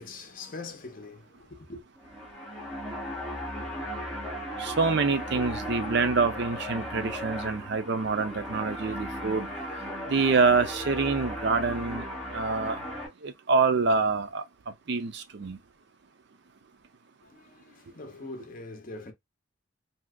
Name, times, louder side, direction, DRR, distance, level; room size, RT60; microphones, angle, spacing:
voice 1, 0.0-1.8 17.2-19.1, left 3 dB, 40° left, 0.8 m, -43 dB
sound 1, 2.0-13.1, equal, ahead, 1.1 m, -36 dB
voice 2, 4.6-9.5 10.1-12.0 12.3-12.8 13.2-14.4 14.9-15.6, right 4 dB, 55° right, 0.5 m, -26 dB
2.8 x 2.3 x 3.5 m
head